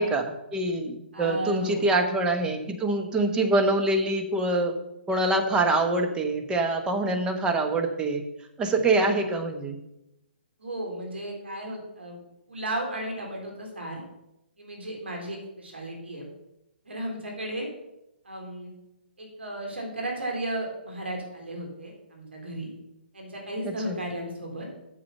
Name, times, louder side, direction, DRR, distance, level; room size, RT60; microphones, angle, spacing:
voice 1, 0.0-4.7 5.1-8.2 8.6-9.8 23.6-24.0, right 2 dB, 15° right, 4 dB, 1.1 m, -25 dB
voice 2, 1.1-1.9 10.6-12.2 12.5-14.0 14.6-16.2 16.9-17.7 18.3-18.7 19.2-22.7 23.1-24.7, right 1 dB, 85° right, 0 dB, 3.7 m, -34 dB
8.7 x 6.9 x 5.6 m, 0.87 s
hypercardioid pair, 135°, 6 cm